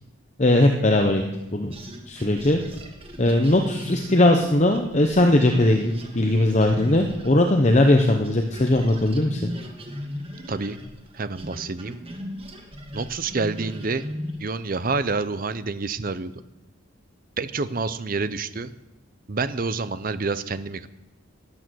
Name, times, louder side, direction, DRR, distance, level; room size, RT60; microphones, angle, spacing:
voice 1, 0.4-1.2 1.5-1.7 2.1-2.6 3.2-9.5, left 1 dB, 35° left, 4 dB, 0.8 m, -19 dB
sound 1, 1.7-8.0 8.2-14.5, equal, 25° right, 1.6 m, -37 dB
voice 2, 10.5-10.8 11.1-12.0 12.9-14.1 14.4-16.3 17.4-18.7 19.3-20.9, right 4 dB, 40° right, 13 dB, 0.6 m, -28 dB
12.5 x 11.5 x 6.3 m, 0.98 s
head